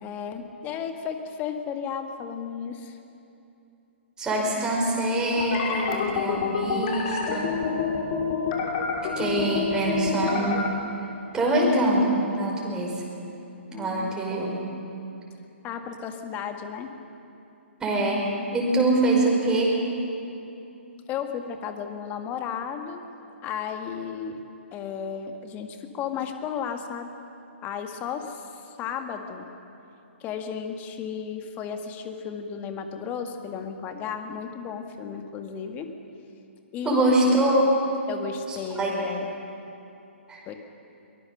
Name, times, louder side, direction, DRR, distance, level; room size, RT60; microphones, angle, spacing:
voice 1, 0.0-3.0 13.7-14.1 15.6-16.9 21.1-23.0 23.4-24.4 24.7-27.1 27.6-29.5 30.2-35.9 36.7-37.2 38.1-39.3 40.5-40.6, left 7 dB, 25° left, 6 dB, 1.8 m, -34 dB
voice 2, 4.2-7.5 9.2-10.6 11.3-12.9 13.8-14.5 17.8-18.3 18.5-19.7 36.8-37.9 38.5-38.9 40.3-40.4, right 1 dB, 10° right, -3 dB, 5.2 m, -24 dB
sound 1, 5.4-10.7, left 5 dB, 45° left, 3.2 m, -27 dB
23.5 x 20.0 x 6.7 m, 2.8 s
figure-of-eight pair, 130°, 7 cm